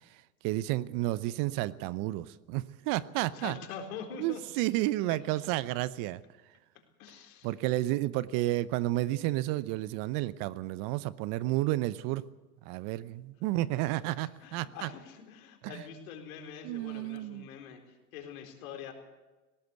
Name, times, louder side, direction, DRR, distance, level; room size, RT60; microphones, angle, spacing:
voice 1, 0.4-3.6 4.1-6.2 7.4-12.2 12.7-14.9 15.6-15.8 16.6-17.5, right 17 dB, 45° right, 18 dB, 0.8 m, -31 dB
voice 2, 3.3-4.8 5.1-5.2 7.0-7.5 14.2-18.9, left 7 dB, 70° left, 4 dB, 4.2 m, -45 dB
18.5 x 17.5 x 8.2 m, 1.2 s
hypercardioid pair, 100°, 45 cm